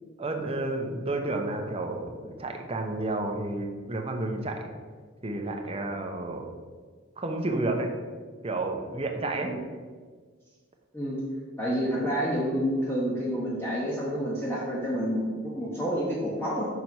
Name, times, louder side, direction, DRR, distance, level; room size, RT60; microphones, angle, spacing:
voice 1, 0.2-4.7 5.2-6.5 7.2-7.9 8.4-9.5, right 2 dB, 30° right, 2 dB, 0.8 m, -31 dB
voice 2, 11.6-16.7, equal, 10° left, -6 dB, 1.0 m, -29 dB
6.0 x 4.5 x 5.3 m, 1.5 s
head